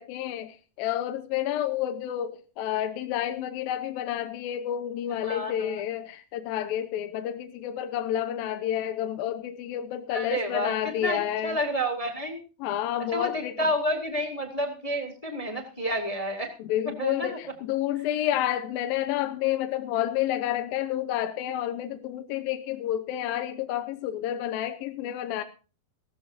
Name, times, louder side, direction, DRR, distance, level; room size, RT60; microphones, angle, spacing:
voice 1, 0.0-11.6 12.6-13.6 16.6-25.4, left 11 dB, 80° left, 7 dB, 2.7 m, -30 dB
voice 2, 5.2-5.8 10.1-12.4 13.1-16.5 17.0-17.4, equal, 10° left, 3 dB, 2.0 m, -30 dB
17.5 x 14.5 x 2.7 m, 0.35 s
omnidirectional pair, 4.3 m